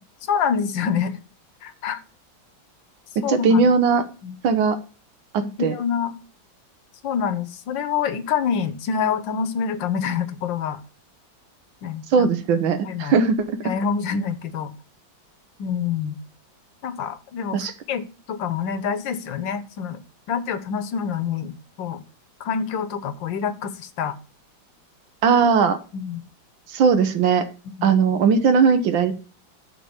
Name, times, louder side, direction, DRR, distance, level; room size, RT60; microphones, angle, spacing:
voice 1, 0.3-1.2 1.6-2.0 3.2-3.7 4.2-4.3 5.4-6.1 7.0-10.8 11.8-12.3 12.8-13.2 13.6-14.7 15.6-16.2 16.8-20.0 20.3-22.0 22.4-24.2 25.9-26.2 27.7-27.9, left 7 dB, 75° left, 12 dB, 1.5 m, -26 dB
voice 2, 3.2-4.0 4.4-4.8 5.3-5.7 12.1-13.6 17.5-17.7 25.2-25.8 26.7-27.4 27.8-29.1, right 5 dB, 85° right, 9 dB, 1.6 m, -19 dB
9.7 x 3.6 x 7.0 m, 0.36 s
omnidirectional pair, 2.1 m